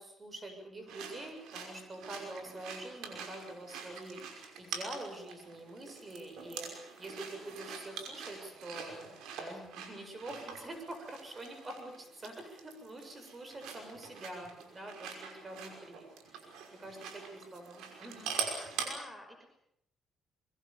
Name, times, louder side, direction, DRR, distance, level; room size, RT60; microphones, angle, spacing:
voice 1, 0.0-4.2 4.6-6.7 7.0-9.0 9.4-16.5 16.7-18.3 18.6-18.8, right 1 dB, 30° right, 6 dB, 7.4 m, -46 dB
sound 1, 0.9-18.9, right 6 dB, 90° right, 5.7 m, -44 dB
voice 2, 18.6-19.4, left 1 dB, ahead, 4 dB, 5.4 m, -51 dB
24.0 x 22.5 x 7.2 m, 0.76 s
cardioid pair, 90°, 0 cm